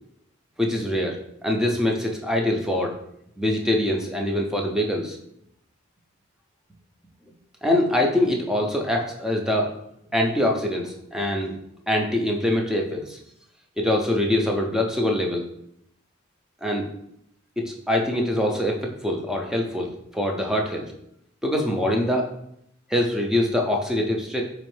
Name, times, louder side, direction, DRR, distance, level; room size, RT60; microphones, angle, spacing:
voice 1, 0.6-2.9 3.4-5.2 7.6-9.7 10.1-11.6 11.9-13.2 13.8-15.5 16.6-16.9 17.6-20.9 21.4-22.3 22.9-24.4, left 1 dB, 5° right, 1 dB, 0.4 m, -24 dB
4.2 x 3.0 x 3.1 m, 0.75 s
head